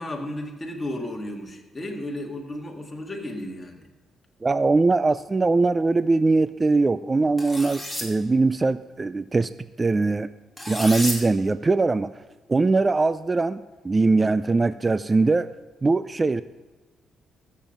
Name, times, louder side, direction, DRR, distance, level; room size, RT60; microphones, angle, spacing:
voice 1, 0.0-3.9, left 1 dB, 20° left, 1 dB, 2.0 m, -33 dB
voice 2, 4.4-9.5 9.8-10.3 10.7-12.1 12.5-15.5 15.8-16.4, right 3 dB, 25° right, 15 dB, 0.3 m, -21 dB
sound 1, 7.4-8.1 10.6-11.2, left 1 dB, ahead, 3.0 m, -31 dB
13.5 x 7.4 x 5.3 m, 1.2 s
cardioid pair, 90°, 0 cm